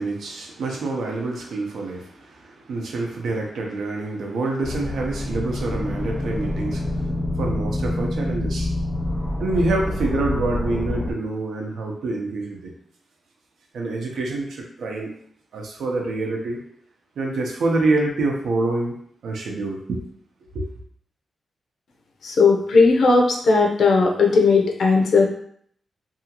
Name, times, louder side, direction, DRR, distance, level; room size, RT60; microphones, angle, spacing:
voice 1, 0.0-6.8 7.4-8.7 9.4-12.7 13.7-15.1 15.5-16.6 17.2-18.9 19.2-20.0 20.5-20.7, right 2 dB, 90° right, 0 dB, 0.6 m, -26 dB
sound 1, 4.6-11.1, left 1 dB, 5° right, 0.5 m, -27 dB
voice 2, 22.2-25.2, left 4 dB, 65° left, 0 dB, 0.5 m, -17 dB
2.7 x 2.4 x 2.8 m, 0.63 s
wide cardioid pair, 180°, 0 cm